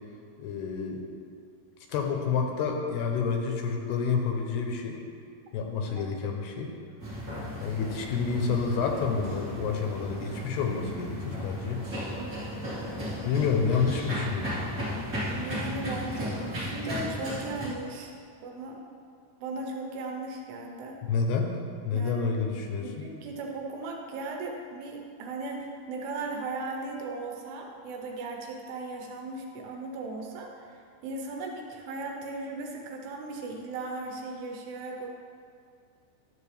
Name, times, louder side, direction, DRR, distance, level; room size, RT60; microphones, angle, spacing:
voice 1, 0.4-1.0 1.9-5.0 5.5-6.7 7.6-11.8 13.2-14.5 21.0-21.5 21.8-23.0, left 5 dB, 80° left, 2 dB, 2.7 m, -29 dB
sound 1, 7.0-17.7, equal, 30° right, 1.7 m, -35 dB
voice 2, 15.3-18.1 18.4-18.8 19.4-21.0 21.9-22.3 22.8-35.1, right 3 dB, 75° right, 1 dB, 2.9 m, -37 dB
12.5 x 7.5 x 3.3 m, 2.2 s
omnidirectional pair, 4.8 m